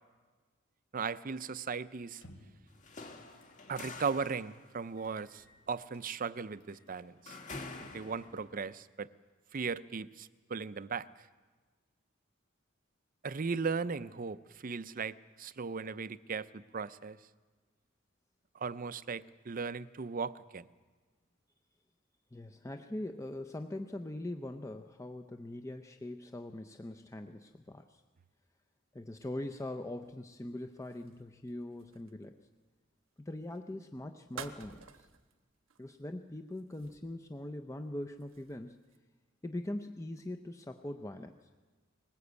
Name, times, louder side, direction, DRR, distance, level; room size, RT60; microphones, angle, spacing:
voice 1, 0.9-2.2 3.7-7.4 7.8-9.1 9.5-11.3 13.2-17.2 18.5-20.7, right 5 dB, 45° right, 16 dB, 0.6 m, -37 dB
sound 1, 2.1-2.7 3.4-3.6 4.0-4.1 5.0-6.1 6.6-7.0 7.3-7.6 8.0-8.3 8.7-8.8 9.2-10.0, left 1 dB, 85° left, 3.8 m, -60 dB
sound 2, 2.7-8.6, left 3 dB, 40° left, 2.1 m, -48 dB
voice 2, 22.3-28.0 28.9-32.4 33.3-35.1 35.8-38.8 39.4-41.5, left 1 dB, 15° left, 6 dB, 0.6 m, -42 dB
sound 3, 30.0-32.5 33.4-33.7 34.3-35.4 35.7-36.0 36.5-37.3 37.7-39.0, right 6 dB, 85° right, 1.2 m, -51 dB
20.5 x 19.0 x 8.2 m, 1.4 s
head